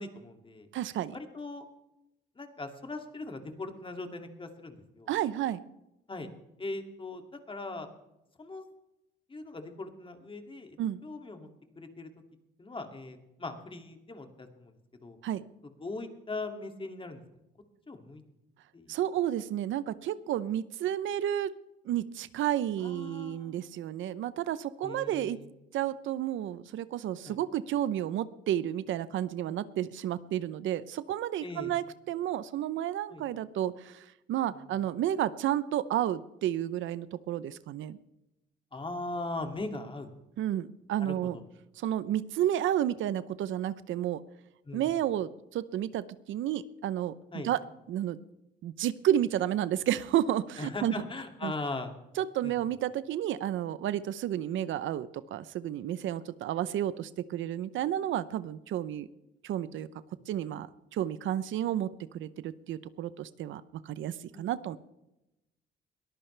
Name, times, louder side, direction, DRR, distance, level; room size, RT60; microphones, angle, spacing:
voice 1, 0.0-0.7 1.1-1.6 2.4-5.1 6.1-6.3 6.6-7.2 7.5-7.9 8.4-8.6 9.3-10.8 11.0-11.5 11.8-12.1 12.6-14.7 15.0-15.2 15.8-17.2 17.9-18.2 18.7-18.9 22.8-23.7 24.8-25.5 27.3-27.4 31.4-31.7 33.1-33.2 38.7-40.1 41.0-41.4 44.7-44.9 47.3-47.5 50.6-51.9 52.4-52.5 64.3-64.5, left 2 dB, 25° left, 5 dB, 2.5 m, -40 dB
voice 2, 0.7-1.2 5.1-5.6 10.8-11.0 15.2-15.4 18.9-21.5 21.8-25.4 25.7-38.0 40.4-41.4 41.8-44.2 44.7-47.6 47.9-48.2 48.6-51.0 51.4-51.5 52.2-59.1 59.4-59.9 60.3-60.7 60.9-64.8, right 11 dB, 80° right, 16 dB, 0.7 m, -31 dB
21.5 x 14.5 x 3.4 m, 0.90 s
cardioid pair, 90°, 20 cm